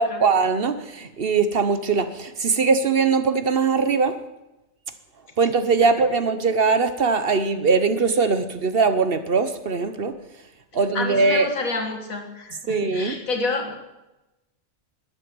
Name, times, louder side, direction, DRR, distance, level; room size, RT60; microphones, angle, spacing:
voice 1, 0.0-4.1 5.4-10.1 10.7-11.5 12.7-13.2, right 4 dB, 50° right, 10 dB, 1.0 m, -21 dB
voice 2, 10.9-13.8, left 3 dB, 90° left, 4 dB, 2.4 m, -29 dB
12.0 x 9.7 x 8.7 m, 0.98 s
omnidirectional pair, 1.4 m